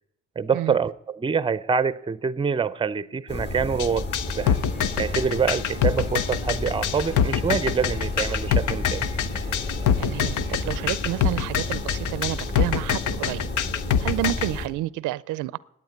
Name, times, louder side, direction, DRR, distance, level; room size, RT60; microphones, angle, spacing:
voice 1, 0.4-4.1 4.4-4.6 5.0-9.1, right 6 dB, 15° right, 0.5 m, -25 dB
sound 1, 3.3-14.7, left 2 dB, 35° left, 2.0 m, -32 dB
sound 2, 3.8-14.5, left 9 dB, 75° left, 0.8 m, -24 dB
sound 3, 4.2-10.6, left 1 dB, 60° left, 6.2 m, -42 dB
voice 2, 10.0-13.5 14.0-15.6, right 15 dB, 85° right, 0.5 m, -30 dB
10.5 x 8.9 x 9.6 m
cardioid pair, 90°, 30 cm